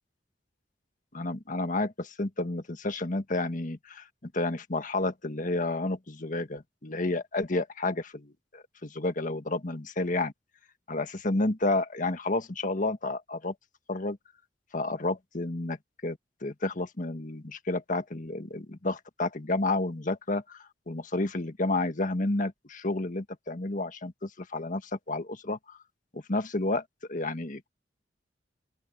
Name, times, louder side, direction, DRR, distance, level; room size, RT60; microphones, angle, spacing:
voice 1, 1.1-10.3 10.9-13.5 13.9-14.2 14.7-15.8 16.0-25.8 26.1-26.8 27.1-27.7, left 2 dB, 50° left, 1.6 m, -31 dB
open air
head